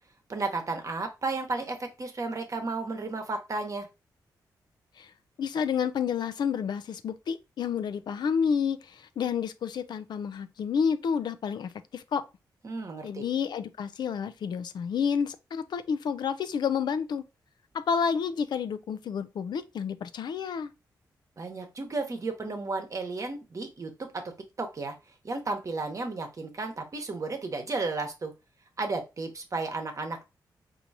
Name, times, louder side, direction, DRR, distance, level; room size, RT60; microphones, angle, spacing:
voice 1, 0.3-3.9 12.6-13.2 21.4-24.2 24.6-24.9 25.2-28.3 28.8-30.2, right 3 dB, 45° right, 1.0 m, -33 dB
voice 2, 5.4-12.2 13.0-17.2 17.7-20.7, left 7 dB, 70° left, 0.4 m, -30 dB
4.5 x 2.7 x 2.7 m
cardioid pair, 75°, 8 cm